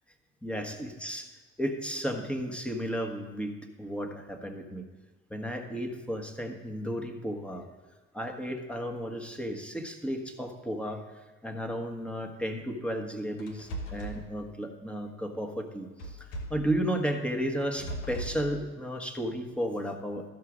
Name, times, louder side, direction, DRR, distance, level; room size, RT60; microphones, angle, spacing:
voice 1, 0.4-1.3 1.6-3.5 3.8-4.9 5.3-7.6 8.1-20.2, equal, 5° left, 3 dB, 1.4 m, -33 dB
sound 1, 13.4-14.2 16.0-16.7 17.6-18.4, right 1 dB, 85° left, 1.2 m, -38 dB
13.0 x 5.8 x 5.1 m, 1.2 s
hypercardioid pair, 65°, 34 cm